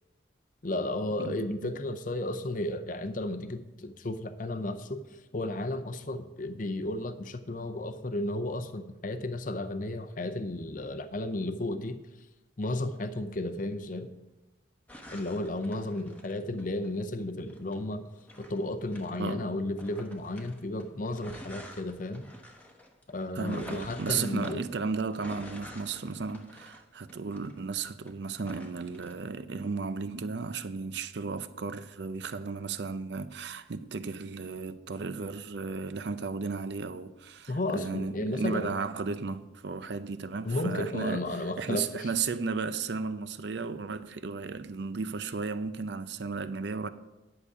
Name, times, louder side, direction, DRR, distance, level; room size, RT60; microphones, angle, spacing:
voice 1, 0.6-5.0 5.3-12.0 12.6-14.1 15.1-18.0 18.4-22.3 23.1-24.6 37.5-38.7 40.4-42.1, left 1 dB, 45° left, 0.6 m, -33 dB
voice 2, 1.2-1.7 19.2-19.5 23.3-46.9, right 4 dB, 65° right, 0.5 m, -34 dB
sound 1, 14.9-16.9 17.5-19.3 19.8-28.1 28.4-29.1, equal, 10° left, 0.9 m, -48 dB
11.0 x 6.8 x 4.9 m
head